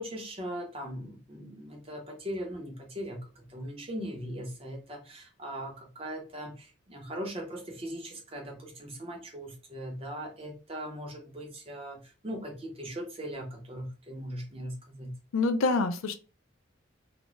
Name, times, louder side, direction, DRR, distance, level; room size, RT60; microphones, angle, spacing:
voice 1, 0.0-15.1, equal, 30° right, 2 dB, 0.6 m, -39 dB
voice 2, 15.3-16.1, left 3 dB, 90° left, 9 dB, 0.4 m, -26 dB
2.4 x 2.1 x 3.0 m, 0.33 s
head